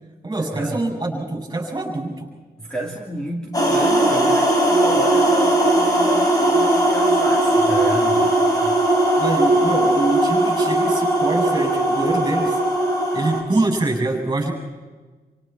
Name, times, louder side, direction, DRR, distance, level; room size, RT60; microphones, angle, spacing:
voice 1, 0.2-2.3 9.2-12.6 13.1-14.5, right 2 dB, 25° right, 1 dB, 7.6 m, -24 dB
voice 2, 2.6-8.7, right 1 dB, 5° left, -3 dB, 3.0 m, -30 dB
sound 1, 3.5-13.4, right 1 dB, 20° left, 4.2 m, -18 dB
29.0 x 28.5 x 4.6 m, 1.3 s
wide cardioid pair, 160°, 16 cm